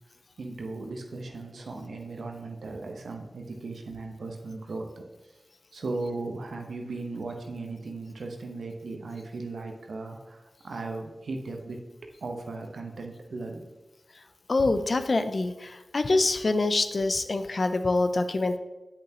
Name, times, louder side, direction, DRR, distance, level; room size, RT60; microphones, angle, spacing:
voice 1, 0.4-5.0 5.7-11.8 12.2-13.7, right 3 dB, 80° right, 3 dB, 0.9 m, -37 dB
voice 2, 14.5-18.6, left 2 dB, 60° left, 9 dB, 0.5 m, -25 dB
7.8 x 7.1 x 2.9 m, 1.1 s
cardioid pair, 40°, 0 cm